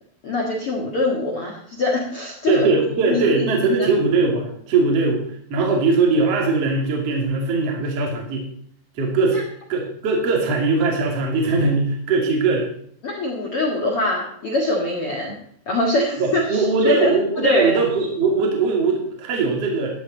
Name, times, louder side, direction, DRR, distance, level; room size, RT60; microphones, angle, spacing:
voice 1, 0.2-2.7 3.1-3.9 13.0-15.4 15.7-17.2 17.4-17.7, left 1 dB, 45° left, -1 dB, 2.1 m, -23 dB
voice 2, 2.5-8.5 8.9-9.4 9.7-12.7 16.2-20.0, right 3 dB, 40° right, 0 dB, 3.0 m, -20 dB
15.0 x 11.0 x 4.0 m, 0.65 s
omnidirectional pair, 4.9 m